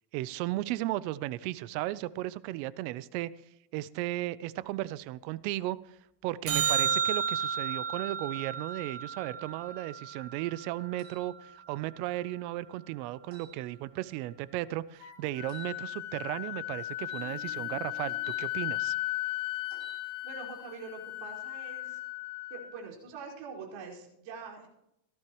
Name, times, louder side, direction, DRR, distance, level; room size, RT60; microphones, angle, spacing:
voice 1, 0.1-3.3 3.7-5.8 6.2-19.0, right 16 dB, 85° right, 0.8 m, -35 dB
sound 1, 6.5-10.9 17.5-17.6, right 7 dB, 30° right, 1.6 m, -32 dB
sound 2, 11.0-11.2 13.3-13.5 15.5-15.7 17.0-18.4 19.7-20.0, right 5 dB, 45° right, 6.3 m, -52 dB
Wind instrument woodwind instrument, 15.0-22.8, left 18 dB, 85° left, 2.1 m, -36 dB
voice 2, 20.2-22.0 22.5-24.7, right 5 dB, 65° right, 5.1 m, -44 dB
17.5 x 14.0 x 3.1 m
cardioid pair, 130°, 49 cm